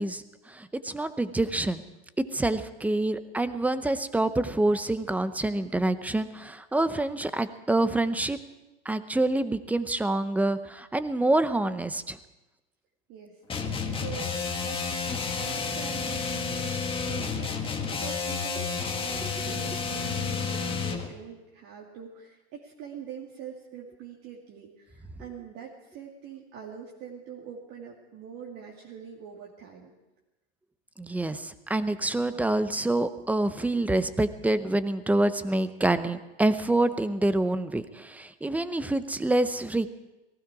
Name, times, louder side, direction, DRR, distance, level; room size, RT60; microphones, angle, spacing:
voice 1, 0.0-1.8 2.3-8.4 8.9-12.2 19.2-19.3 31.0-39.9, right 2 dB, 5° right, 12 dB, 0.6 m, -27 dB
voice 2, 13.1-14.3 14.6-14.8 15.3-29.9, right 7 dB, 50° right, -3 dB, 2.3 m, -44 dB
sound 1, 13.5-21.1, left 5 dB, 15° left, 1.6 m, -31 dB
18.5 x 15.5 x 4.8 m, 1.0 s
hypercardioid pair, 120°, 32 cm